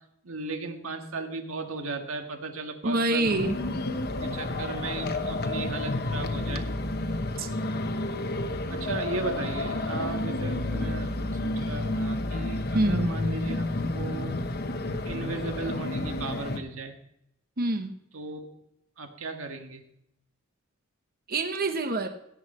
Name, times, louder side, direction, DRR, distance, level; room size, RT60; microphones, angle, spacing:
voice 1, 0.2-3.4 4.2-6.7 8.7-13.7 13.9-14.4 15.1-16.9 18.1-18.5 19.0-19.8, right 3 dB, 85° right, 5 dB, 1.6 m, -36 dB
voice 2, 2.8-3.6 7.4-7.5 12.7-13.1 17.6-17.9 21.3-22.1, right 2 dB, 45° right, 7 dB, 1.0 m, -26 dB
sound 1, 3.2-16.6, left 2 dB, 50° left, 1.0 m, -30 dB
17.0 x 8.2 x 4.3 m, 0.79 s
head